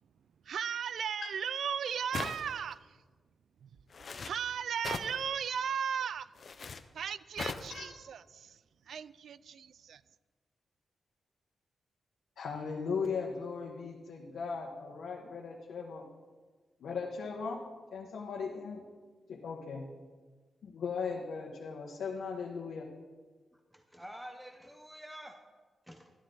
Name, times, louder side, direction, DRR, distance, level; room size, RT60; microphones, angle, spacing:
voice 1, 0.5-2.8 4.2-6.3 7.0-8.2 8.9-10.0, right 7 dB, 75° right, 0.4 m, -36 dB
sound 1, 2.1-2.7 3.9-4.3 4.8-5.2 6.4-6.8 7.4-7.8, left 5 dB, 45° left, 0.6 m, -39 dB
voice 2, 12.4-16.0 16.8-17.6 17.9-18.8 19.3-19.8 20.6-22.9, left 5 dB, 85° left, 1.4 m, -38 dB
voice 3, 23.5-25.4 25.9-26.1, equal, 5° right, 0.8 m, -48 dB
13.0 x 12.0 x 3.9 m
wide cardioid pair, 145°, 0 cm